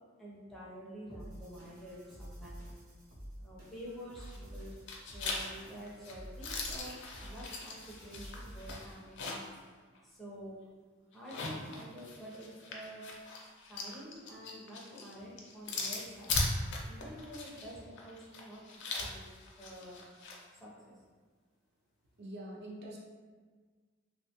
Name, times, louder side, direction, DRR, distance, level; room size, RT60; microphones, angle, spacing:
voice 1, 0.2-2.8 3.4-4.7 5.1-9.4 10.0-10.6 11.1-13.0 13.7-16.4 16.9-19.2 19.6-20.0 20.5-20.9, equal, ahead, -7 dB, 0.4 m, -48 dB
sound 1, 1.1-9.0, equal, 90° right, 0.7 m, -49 dB
sound 2, 4.2-4.6 4.9-9.6 10.0-10.1 11.1-20.4, left 3 dB, 60° left, 0.4 m, -39 dB
voice 2, 22.2-23.0, right 1 dB, 55° right, -2 dB, 0.5 m, -44 dB
2.6 x 2.2 x 2.8 m, 1.5 s
head